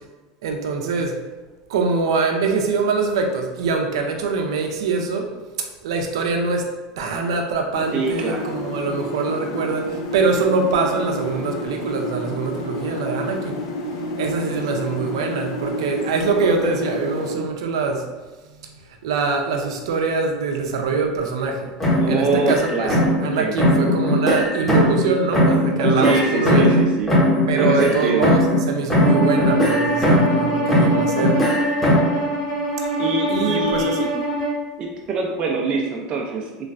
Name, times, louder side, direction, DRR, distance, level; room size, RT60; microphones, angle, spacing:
voice 1, 0.4-1.2 1.7-5.3 5.8-6.7 7.0-13.6 14.2-18.1 19.0-21.7 22.1-23.0 23.2-26.8 27.5-31.5 33.3-34.1, right 4 dB, 85° right, 3 dB, 0.5 m, -23 dB
sound 1, 7.7-17.3, left 1 dB, 80° left, 0.5 m, -30 dB
voice 2, 7.9-8.5 22.0-23.5 26.0-27.1 27.6-28.2 33.0-34.1 34.8-36.7, right 3 dB, 35° right, 0 dB, 0.5 m, -24 dB
sound 2, 21.8-23.3 23.6-25.1 25.3-28.6 28.9-30.4 30.7-32.2, equal, 10° left, 1.0 m, -19 dB
Bowed string instrument, 29.0-34.6, right 1 dB, 65° left, 1.2 m, -24 dB
3.1 x 3.1 x 2.5 m, 1.2 s
supercardioid pair, 115°, 3 cm